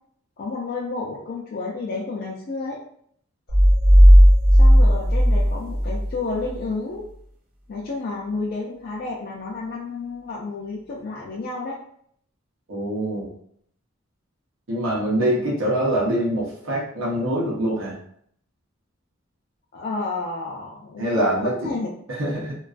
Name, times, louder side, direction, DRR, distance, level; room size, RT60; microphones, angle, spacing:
voice 1, 0.4-2.8 4.5-7.0 7.7-11.8 19.7-21.9, left 3 dB, 50° left, -4 dB, 0.4 m, -31 dB
sound 1, 3.5-6.1, equal, 45° right, 0.6 m, -13 dB
voice 2, 12.7-13.3 14.7-18.0 21.0-21.7 22.1-22.6, right 1 dB, 85° right, -4 dB, 0.7 m, -24 dB
2.3 x 2.2 x 2.4 m, 0.65 s
head